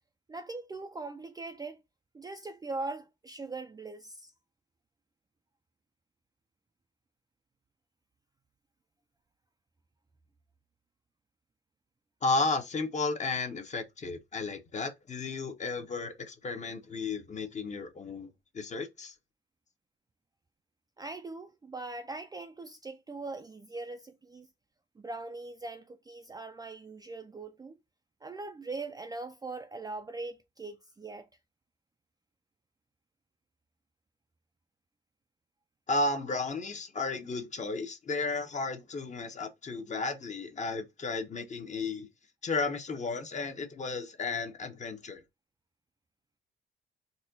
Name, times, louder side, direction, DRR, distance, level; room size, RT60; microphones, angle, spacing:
voice 1, 0.3-1.8 2.1-4.3 21.0-24.5 25.0-27.8 28.2-31.3, right 3 dB, 20° right, 0.4 m, -41 dB
voice 2, 12.2-19.1 35.9-42.1 42.4-45.2, left 3 dB, 35° left, 0.9 m, -33 dB
4.1 x 2.3 x 2.6 m
cardioid pair, 90°, 20 cm